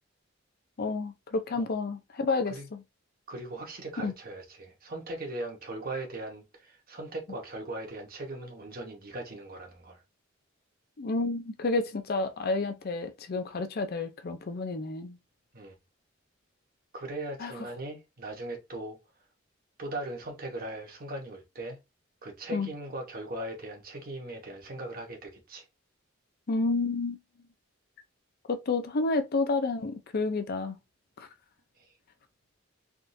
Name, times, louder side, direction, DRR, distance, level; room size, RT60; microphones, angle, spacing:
voice 1, 0.8-2.8 4.0-4.1 11.0-15.2 17.4-17.5 22.5-22.7 26.5-27.2 28.5-30.8 31.2-31.3, left 3 dB, 50° left, 0.5 m, -30 dB
voice 2, 3.3-10.0 15.5-15.7 16.9-19.0 19.8-21.8 22.2-25.6, right 1 dB, 50° right, 1.1 m, -39 dB
3.5 x 2.4 x 2.7 m
head